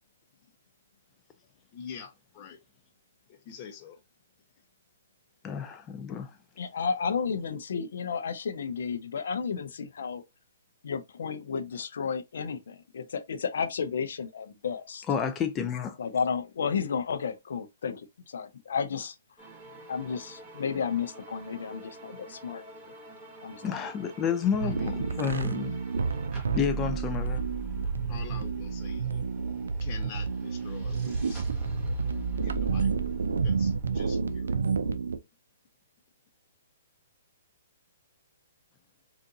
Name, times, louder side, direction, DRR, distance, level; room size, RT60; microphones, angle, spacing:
voice 1, 1.7-2.6 3.3-4.0 24.6-25.0 28.1-29.3 29.8-31.5 32.4-34.6, left 7 dB, 35° left, 0.8 m, -45 dB
voice 2, 5.4-6.3 15.1-16.0 23.6-25.8 26.5-27.4, left 7 dB, 20° left, 0.5 m, -30 dB
voice 3, 6.6-10.2 10.8-15.0 16.0-19.5 19.9-22.6 23.4-23.8, left 6 dB, 70° left, 0.6 m, -32 dB
sound 1, 19.4-34.4, right 4 dB, 10° right, 1.5 m, -41 dB
sound 2, 24.5-35.2, right 5 dB, 85° right, 0.4 m, -30 dB
3.8 x 2.5 x 2.6 m
hypercardioid pair, 145°, 0 cm